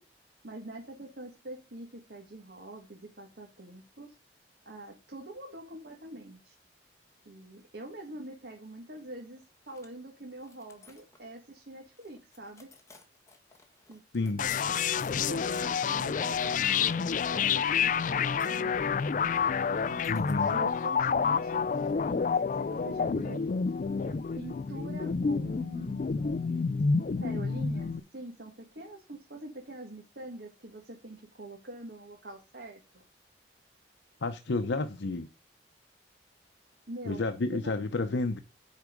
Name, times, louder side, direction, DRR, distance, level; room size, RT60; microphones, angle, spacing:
voice 1, 0.4-4.1 4.6-6.5 7.3-12.7 13.9-14.0 14.4-14.8 15.1-19.0 19.7-20.1 20.4-23.4 24.0-26.1 27.2-33.0 36.9-37.3 37.5-37.7, right 1 dB, 60° right, 1.9 m, -45 dB
sound 1, 9.4-9.9 10.4-11.4 12.0-14.3 14.7-17.0 18.4-18.6 20.0-20.5, left 4 dB, 15° left, 1.5 m, -58 dB
voice 2, 14.1-14.4 20.1-20.5 34.2-35.3 37.0-38.4, left 3 dB, 75° left, 0.7 m, -30 dB
sound 2, 14.4-28.0, left 6 dB, 45° left, 0.4 m, -29 dB
9.5 x 4.8 x 5.2 m
head